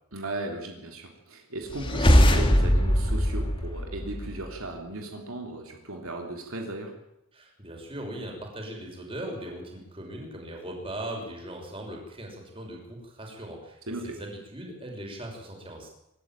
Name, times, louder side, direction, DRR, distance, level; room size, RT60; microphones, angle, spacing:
voice 1, 0.1-6.9 13.9-14.2, right 2 dB, 70° right, 2 dB, 3.4 m, -36 dB
sound 1, 1.7-4.5, equal, 25° left, 2.4 m, -21 dB
voice 2, 7.3-15.9, right 1 dB, 25° right, 1 dB, 6.1 m, -39 dB
26.0 x 13.0 x 9.1 m, 0.87 s
head